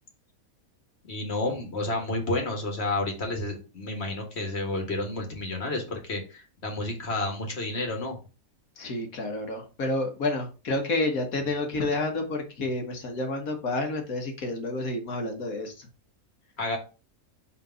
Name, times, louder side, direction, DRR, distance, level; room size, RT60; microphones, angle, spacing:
voice 1, 1.1-8.2 16.6-16.8, left 2 dB, 45° left, 2 dB, 1.8 m, -30 dB
voice 2, 8.8-15.9, left 2 dB, 70° left, 4 dB, 1.8 m, -29 dB
5.7 x 3.5 x 5.5 m, 0.32 s
omnidirectional pair, 1.6 m